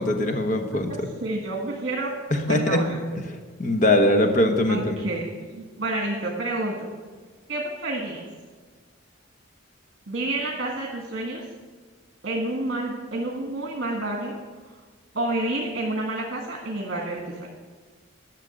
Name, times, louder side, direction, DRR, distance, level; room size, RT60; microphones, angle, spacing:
voice 1, 0.0-1.1 2.3-2.9 3.6-4.9, left 1 dB, 40° left, 5 dB, 1.1 m, -21 dB
voice 2, 0.9-2.1 2.5-3.0 4.7-6.9 7.5-8.2 10.1-11.4 12.2-14.4 15.1-17.5, right 2 dB, 55° right, 0 dB, 1.6 m, -29 dB
12.0 x 6.3 x 7.8 m, 1.5 s
head